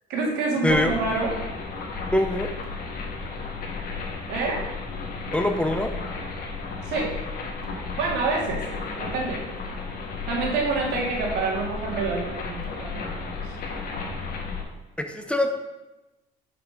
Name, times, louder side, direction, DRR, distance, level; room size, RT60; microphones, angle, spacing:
voice 1, 0.1-1.3 4.3-4.6 6.9-7.1 8.0-8.6 9.0-9.4 10.3-13.1, right 3 dB, 90° right, -2 dB, 2.5 m, -27 dB
voice 2, 0.6-0.9 2.1-2.5 5.3-5.9 15.0-15.5, left 1 dB, 5° left, 6 dB, 0.8 m, -23 dB
sound 1, 0.7-14.6, left 4 dB, 60° left, 1.9 m, -33 dB
5.9 x 5.8 x 6.6 m, 1.0 s
cardioid pair, 110°, 17 cm